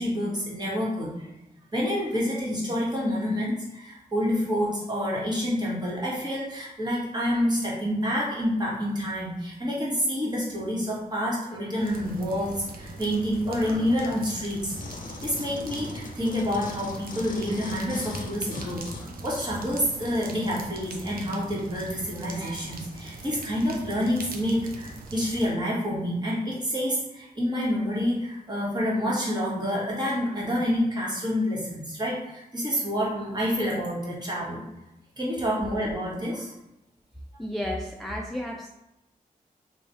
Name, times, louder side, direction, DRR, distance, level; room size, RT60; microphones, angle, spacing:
voice 1, 0.0-1.3 1.7-14.7 15.2-34.6 35.2-36.5, equal, 30° right, -5 dB, 1.3 m, -28 dB
sound 1, 11.8-25.5, right 2 dB, 70° right, 0.6 m, -41 dB
sound 2, 14.7-20.2 20.8-20.9, left 3 dB, 65° left, 0.5 m, -40 dB
voice 2, 37.4-38.7, left 1 dB, ahead, -1 dB, 0.3 m, -32 dB
3.2 x 2.2 x 4.0 m, 0.92 s
cardioid pair, 85°, 15 cm